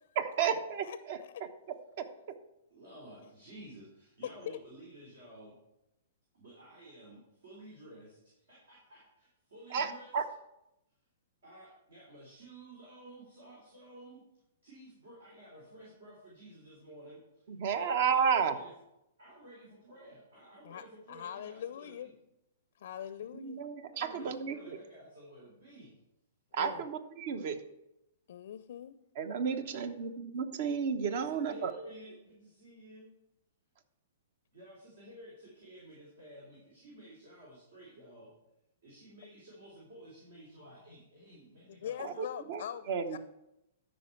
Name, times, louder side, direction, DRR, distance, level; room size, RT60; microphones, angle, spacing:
voice 1, 0.2-1.5 2.0-2.4 9.7-10.2 17.5-18.6 23.3-24.6 26.5-27.6 29.1-31.7 42.0-43.2, right 6 dB, 55° right, 11 dB, 0.9 m, -32 dB
voice 2, 0.8-1.4 4.5-4.6 20.6-22.1 22.8-23.6 26.6-26.8 28.3-29.0 41.8-43.2, left 10 dB, 65° left, 13 dB, 0.4 m, -42 dB
voice 3, 2.7-5.6 6.3-10.1 11.4-14.2 14.6-17.2 17.7-18.7 19.2-22.1 23.9-25.9 29.5-30.0 31.1-33.1 34.5-38.3 38.8-42.2, right 1 dB, 75° right, -4 dB, 3.2 m, -53 dB
13.0 x 5.4 x 4.5 m, 0.87 s
hypercardioid pair, 115°, 0 cm